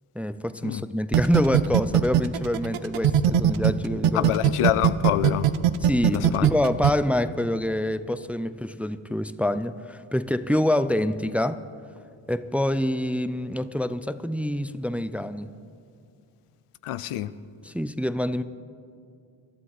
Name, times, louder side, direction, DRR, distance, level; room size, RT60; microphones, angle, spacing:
voice 1, 0.1-4.3 5.8-11.6 12.3-15.5 17.6-18.4, left 1 dB, 5° right, 13 dB, 0.4 m, -26 dB
sound 1, 1.1-3.7 4.0-6.9, right 11 dB, 80° right, 0.7 m, -19 dB
voice 2, 4.1-5.5 6.1-6.5 16.8-17.3, left 13 dB, 85° left, 15 dB, 0.6 m, -26 dB
21.0 x 12.0 x 4.2 m, 2.3 s
supercardioid pair, 45°, 50 cm